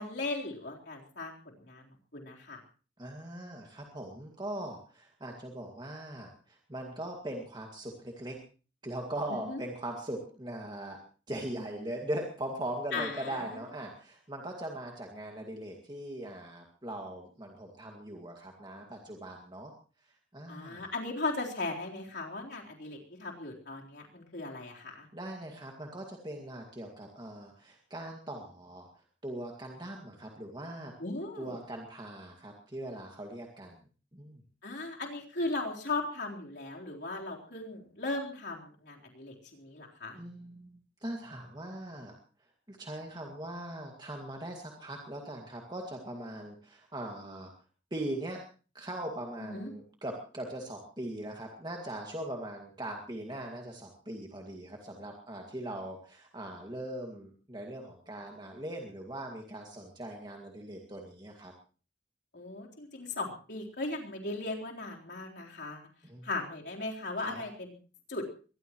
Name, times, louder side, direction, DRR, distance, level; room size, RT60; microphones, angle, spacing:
voice 1, 0.0-1.9 2.1-2.6 9.3-9.6 12.9-13.4 20.5-25.1 31.0-31.6 34.6-40.2 49.5-49.7 62.3-65.9 66.2-67.7 68.1-68.2, left 2 dB, 60° left, -1 dB, 4.0 m, -37 dB
voice 2, 3.0-8.4 8.8-19.7 20.0-20.9 25.1-30.9 31.4-33.8 34.1-34.4 40.1-42.2 42.7-47.5 47.9-48.4 48.7-61.5 66.0-66.3 67.2-67.4, right 1 dB, 25° right, 1 dB, 2.1 m, -40 dB
22.5 x 20.0 x 3.1 m, 0.38 s
head